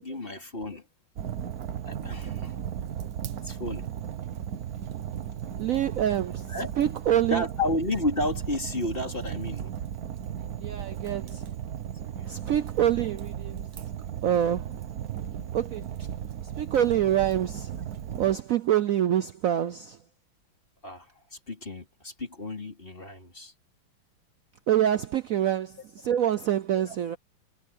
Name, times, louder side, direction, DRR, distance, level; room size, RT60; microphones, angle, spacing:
voice 1, 0.0-0.9 1.8-2.6 3.4-3.9 6.5-6.7 7.3-9.7 12.1-12.4 20.8-23.5 26.7-27.0, left 2 dB, 25° left, 4.2 m, -32 dB
Fire, 1.2-18.4, right 9 dB, 55° right, 1.3 m, -36 dB
voice 2, 5.6-7.4 10.6-11.5 12.2-13.7 14.2-14.8 15.5-16.1 16.4-17.7 18.2-20.0 24.7-27.2, right 10 dB, 75° right, 0.7 m, -26 dB
omnidirectional pair, 2.3 m